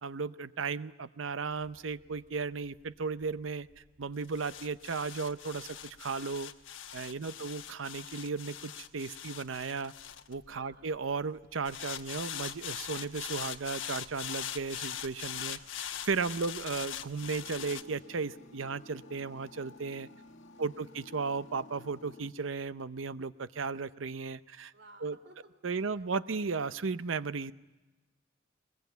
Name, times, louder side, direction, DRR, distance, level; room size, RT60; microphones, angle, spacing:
voice 1, 0.0-3.7 4.0-6.5 6.9-9.9 10.3-15.6 16.0-20.1 20.6-24.7 25.0-25.2 25.6-27.5, right 4 dB, 90° right, 15 dB, 0.7 m, -35 dB
sound 1, 1.5-11.0 11.7-17.8, left 10 dB, 85° left, 1.2 m, -42 dB
voice 2, 10.6-10.9 15.3-15.7 16.2-16.5 20.5-21.0 24.7-25.5 25.8-26.0, right 2 dB, 60° right, 7 dB, 3.4 m, -59 dB
sound 2, 17.2-22.3, left 2 dB, 70° left, 2.1 m, -53 dB
21.5 x 21.5 x 9.3 m, 1.1 s
head